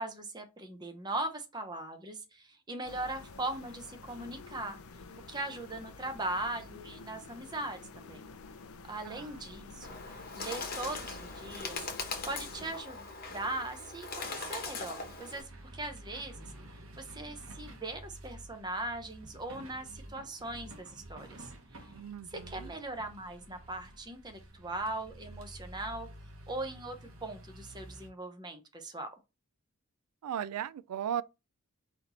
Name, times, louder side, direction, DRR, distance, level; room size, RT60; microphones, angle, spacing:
voice 1, 0.0-4.8 5.3-8.2 8.8-21.5 22.3-26.1 26.5-29.1, right 2 dB, 20° right, 0.6 m, -40 dB
sound 1, 2.8-12.8, left 4 dB, 70° left, 0.5 m, -50 dB
voice 2, 9.0-9.4 21.9-22.7 30.2-31.2, right 9 dB, 90° right, 0.3 m, -37 dB
Bird, 9.8-15.4, left 4 dB, 40° left, 1.0 m, -41 dB
sound 2, 10.9-28.1, right 1 dB, 65° right, 1.1 m, -51 dB
4.3 x 2.8 x 4.0 m
head